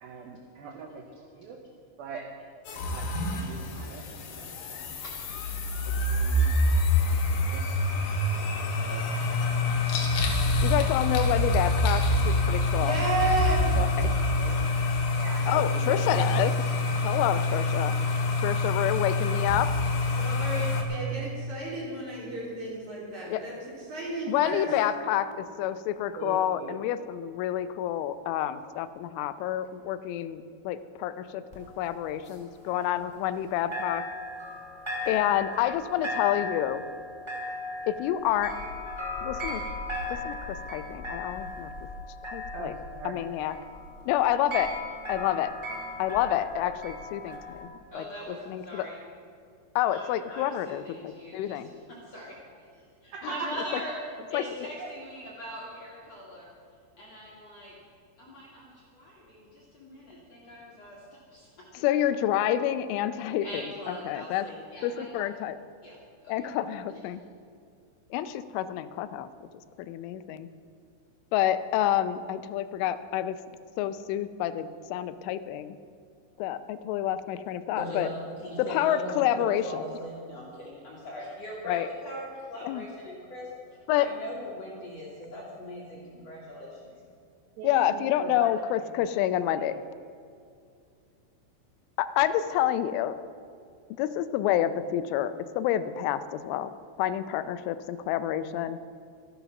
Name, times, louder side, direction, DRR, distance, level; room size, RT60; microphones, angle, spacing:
voice 1, 0.0-1.6 2.0-2.4 2.7-5.1 5.9-6.5 7.0-9.4 14.0-14.7 15.2-16.3 24.5-24.8 26.2-26.8 42.5-43.2 53.1-53.7 54.8-54.9 87.6-88.5 89.6-89.8, right 4 dB, 80° right, 3 dB, 2.2 m, -42 dB
sound 1, 2.7-20.8, left 2 dB, 65° left, 2.0 m, -26 dB
voice 2, 10.6-13.0 13.8-13.9 15.5-16.6 17.0-18.0 18.4-19.7 23.3-23.5 24.3-34.1 35.1-36.8 37.9-38.6 39.2-39.6 40.1-41.7 42.2-42.7 43.1-43.6 44.1-44.8 45.1-45.6 46.0-48.0 48.5-48.9 49.8-51.7 53.2-53.3 54.3-54.4 61.7-64.5 64.8-65.6 66.3-67.2 68.1-69.3 69.8-70.5 71.3-73.4 73.8-75.8 76.4-78.1 78.6-79.8 81.7-81.9 82.6-82.8 83.9-84.1 87.6-89.7 92.0-93.2 94.0-98.8, left 11 dB, 85° left, 12 dB, 3.1 m, -28 dB
voice 3, 12.8-13.9 20.2-23.5 23.9-24.7, right 2 dB, 40° right, -6 dB, 4.5 m, -32 dB
sound 2, 31.5-33.4 33.7-47.6, left 2 dB, 10° right, 1.8 m, -37 dB
voice 4, 47.9-49.0 49.9-51.8 52.1-52.4 53.0-53.9 54.3-56.5 57.0-57.7 58.2-61.0 61.3-61.5 63.4-65.1 65.8-66.0 66.2-66.3 77.8-78.1 78.4-83.5 84.0-86.9, equal, 45° left, -5 dB, 2.3 m, -41 dB
13.5 x 12.0 x 5.9 m, 2.4 s
omnidirectional pair, 5.5 m